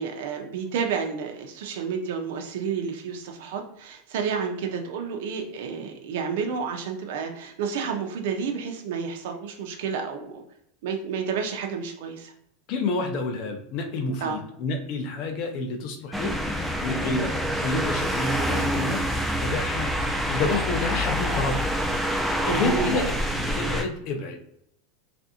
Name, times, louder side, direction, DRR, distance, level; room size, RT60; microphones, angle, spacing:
voice 1, 0.0-10.4 10.8-12.3 14.2-14.4 22.4-22.9, right 6 dB, 70° right, 3 dB, 0.5 m, -30 dB
voice 2, 12.7-16.4 16.8-19.1 19.4-19.9 20.3-21.7 22.4-24.4, left 3 dB, 50° left, 4 dB, 0.5 m, -29 dB
sound 1, 16.1-23.8, equal, ahead, 0.4 m, -26 dB
3.3 x 2.5 x 2.7 m, 0.76 s
supercardioid pair, 140°, 0 cm